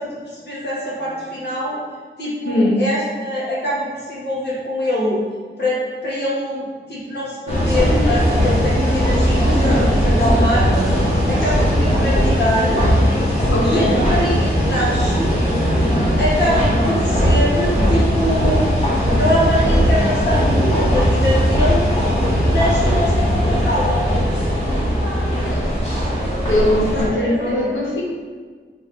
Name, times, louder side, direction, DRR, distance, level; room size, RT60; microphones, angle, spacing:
voice 1, 0.0-1.8 2.2-5.2 5.6-10.8 11.3-12.8 13.1-13.2 13.6-15.4 16.2-18.7 19.1-22.0 22.4-24.1 26.9-27.7, equal, 60° left, -8 dB, 1.5 m, -23 dB
voice 2, 2.4-2.8 11.2-11.6 13.5-14.0 25.4-25.7 26.5-28.0, left 1 dB, 80° left, -3 dB, 1.0 m, -21 dB
sound 1, 7.5-27.1, equal, 35° left, 1.2 m, -18 dB
3.7 x 3.5 x 3.3 m, 1.5 s
wide cardioid pair, 120°, 20 cm